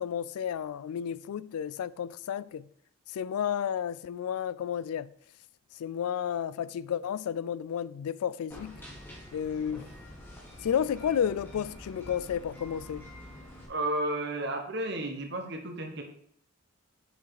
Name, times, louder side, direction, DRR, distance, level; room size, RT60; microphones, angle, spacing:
voice 1, 0.0-2.7 3.1-5.1 5.8-8.8 9.3-9.9 10.6-13.1, left 8 dB, 85° left, 0.3 m, -32 dB
sound 1, 8.5-13.7, left 1 dB, 10° left, 1.7 m, -47 dB
voice 2, 13.7-16.0, right 1 dB, 50° right, 1.1 m, -32 dB
6.5 x 4.8 x 4.8 m
head